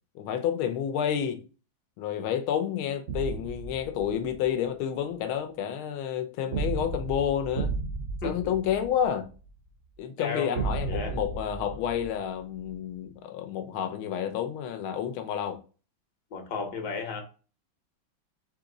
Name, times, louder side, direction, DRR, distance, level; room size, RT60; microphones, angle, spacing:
voice 1, 0.1-1.4 2.0-7.7 8.2-9.3 10.0-15.6, left 9 dB, 85° left, 1.6 m, -30 dB
sound 1, 3.1-4.5 6.5-9.5 10.5-12.7, right 4 dB, 65° right, 0.8 m, -34 dB
voice 2, 8.2-8.5 10.2-11.2 16.3-17.2, left 4 dB, 65° left, 1.4 m, -34 dB
4.0 x 3.0 x 3.7 m
omnidirectional pair, 2.2 m